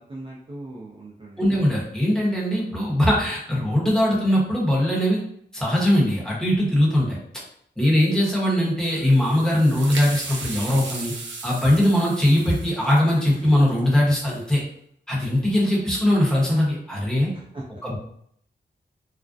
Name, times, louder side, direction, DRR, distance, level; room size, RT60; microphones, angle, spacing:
voice 1, 0.1-1.6 17.3-17.8, right 2 dB, 30° right, -5 dB, 0.5 m, -39 dB
voice 2, 1.4-5.2 5.5-7.2 7.8-11.1 11.4-14.6 15.1-17.3 17.8-18.0, left 1 dB, 5° left, -6 dB, 0.9 m, -20 dB
sound 1, 8.9-14.4, right 3 dB, 90° right, 0.5 m, -37 dB
2.4 x 2.1 x 2.5 m, 0.68 s
wide cardioid pair, 75°, 19 cm